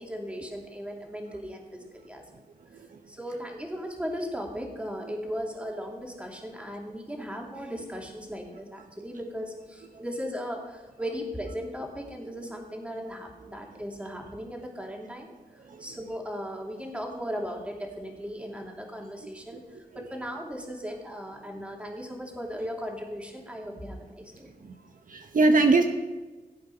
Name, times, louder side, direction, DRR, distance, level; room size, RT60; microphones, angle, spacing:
voice 1, 0.0-2.2 3.1-15.3 15.8-24.5, equal, 10° right, 0 dB, 2.6 m, -37 dB
voice 2, 19.2-19.6 19.9-20.0 24.6-24.8 25.1-25.8, right 3 dB, 60° right, 5 dB, 1.0 m, -24 dB
15.5 x 8.6 x 5.7 m, 1.2 s
wide cardioid pair, 95°, 16 cm